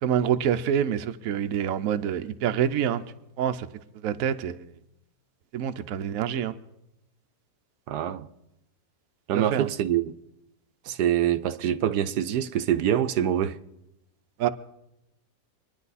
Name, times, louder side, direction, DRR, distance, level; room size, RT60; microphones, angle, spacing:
voice 1, 0.0-3.0 3.4-3.7 4.0-4.7 5.5-6.5 9.5-9.7 14.4-14.5, right 9 dB, 65° right, 1.1 m, -26 dB
voice 2, 7.9-8.3 9.3-10.2 10.9-13.6, right 10 dB, 85° right, 1.3 m, -25 dB
25.5 x 10.5 x 4.1 m
omnidirectional pair, 1.7 m